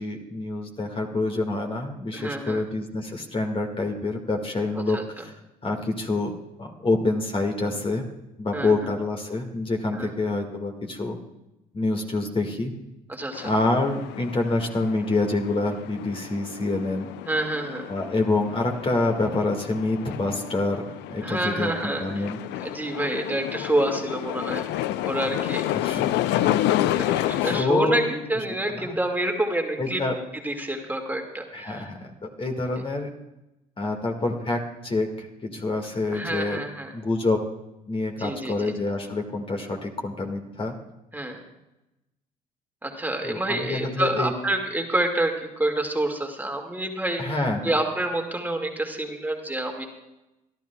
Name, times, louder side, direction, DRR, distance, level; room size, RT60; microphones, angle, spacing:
voice 1, 0.0-5.3 5.6-8.0 8.4-11.2 11.7-12.7 13.4-17.1 17.9-22.4 25.7-26.6 26.8-28.1 28.7-29.0 29.8-30.2 31.5-33.1 33.8-36.6 36.9-37.4 37.9-40.7 43.2-44.3 47.2-47.7, left 2 dB, 30° left, 3 dB, 1.9 m, -27 dB
voice 2, 2.1-2.6 4.7-5.0 8.5-8.7 9.9-10.1 13.1-13.5 17.3-17.9 21.2-22.3 22.6-25.6 27.0-30.0 30.4-31.9 36.1-36.9 38.1-38.7 41.1-41.4 42.8-49.8, right 1 dB, 10° right, 2 dB, 2.0 m, -28 dB
sound 1, 13.3-27.6, left 13 dB, 65° left, 0.5 m, -30 dB
25.0 x 12.0 x 2.3 m, 0.94 s
hypercardioid pair, 60°, 19 cm